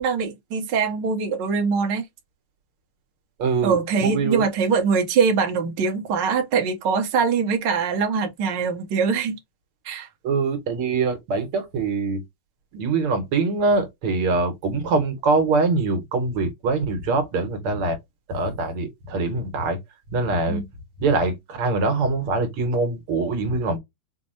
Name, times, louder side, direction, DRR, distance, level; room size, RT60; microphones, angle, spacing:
voice 1, 0.0-2.1 3.6-9.4 9.8-10.1 20.5-20.6, right 5 dB, 60° right, 1.6 m, -23 dB
voice 2, 3.4-4.4 10.2-12.2 12.7-18.0 18.3-19.8 20.1-20.6 21.0-23.8, right 3 dB, 80° right, 2.1 m, -23 dB
5.6 x 2.1 x 2.7 m
omnidirectional pair, 2.4 m